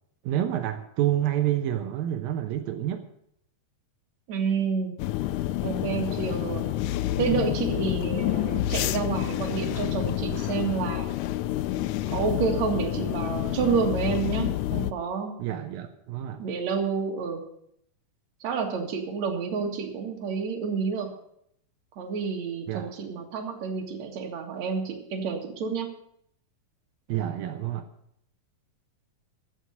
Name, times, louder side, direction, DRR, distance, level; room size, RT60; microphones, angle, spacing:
voice 1, 0.2-3.0 15.4-16.4 22.7-22.9 27.1-27.9, right 12 dB, 85° right, 6 dB, 2.7 m, -28 dB
voice 2, 4.3-4.9 5.6-6.7 7.2-11.1 12.1-15.3 16.4-17.4 18.4-21.1 22.0-25.9, right 5 dB, 55° right, 3 dB, 3.0 m, -29 dB
sound 1, 5.0-14.9, left 14 dB, 80° left, 1.9 m, -28 dB
15.0 x 6.4 x 9.4 m, 0.71 s
omnidirectional pair, 4.0 m